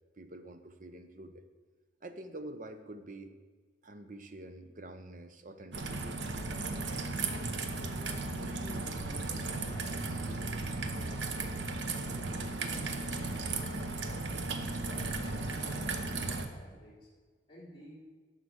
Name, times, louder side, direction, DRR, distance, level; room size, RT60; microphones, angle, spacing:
voice 1, 0.2-1.4 2.0-3.3 3.8-6.2, right 1 dB, 45° right, 9 dB, 0.8 m, -47 dB
Raindrop / Trickle dribble, 5.7-16.5, right 3 dB, 80° right, 1.0 m, -35 dB
voice 2, 7.5-10.5 10.9-14.5 14.8-17.1 17.5-17.9, equal, 25° left, -6 dB, 3.8 m, -53 dB
11.5 x 6.7 x 6.3 m, 1.5 s
head